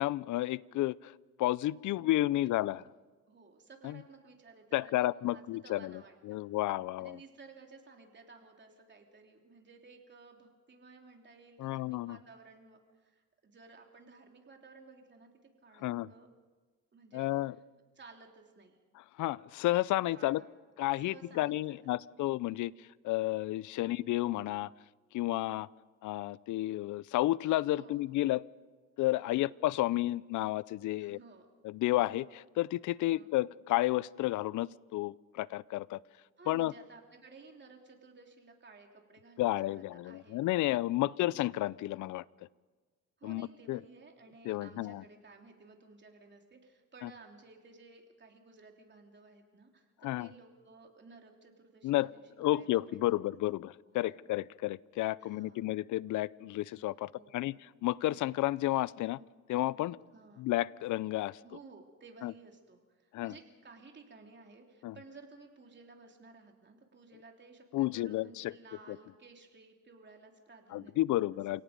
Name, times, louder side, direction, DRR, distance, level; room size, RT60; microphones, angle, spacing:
voice 1, 0.0-2.8 3.8-4.0 4.7-7.2 11.6-12.2 15.8-16.1 17.1-17.5 18.9-20.4 20.8-24.7 25.1-25.7 26.0-28.5 29.0-31.2 31.6-36.0 36.5-36.7 39.4-42.2 43.2-43.8 44.4-45.0 47.0-47.1 50.0-50.3 51.8-52.1 52.4-59.2 59.5-60.0 60.4-61.4 62.2-62.3 63.1-63.3 64.8-65.0 67.7-68.5 68.9-69.0 70.7-71.6, left 16 dB, 75° left, 22 dB, 0.5 m, -32 dB
voice 2, 1.9-2.7 3.3-6.5 7.0-16.3 16.9-17.3 18.0-18.8 20.2-20.5 21.0-21.8 23.8-24.1 27.7-28.2 29.2-29.5 31.0-31.5 33.0-33.3 36.4-40.4 41.0-41.3 43.2-53.2 53.9-54.3 55.2-55.6 57.1-57.5 60.1-60.5 61.4-71.2, right 4 dB, 35° right, 2 dB, 3.5 m, -56 dB
29.0 x 17.5 x 5.3 m, 1.4 s
cardioid pair, 90°, 30 cm